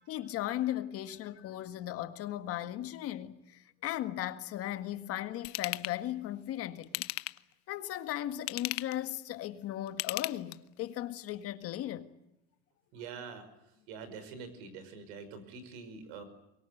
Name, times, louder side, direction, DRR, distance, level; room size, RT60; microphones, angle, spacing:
voice 1, 0.1-7.1 7.7-12.1, left 13 dB, 50° left, 1.7 m, -37 dB
Ratchet pawl / Tools, 5.4-6.0 6.8-7.5 8.3-9.0 9.9-10.8 11.3-11.4, left 22 dB, 70° left, 0.9 m, -36 dB
voice 2, 12.9-13.4 13.9-16.2, right 5 dB, 85° right, 5.5 m, -45 dB
24.0 x 22.5 x 9.3 m
cardioid pair, 145°, 30 cm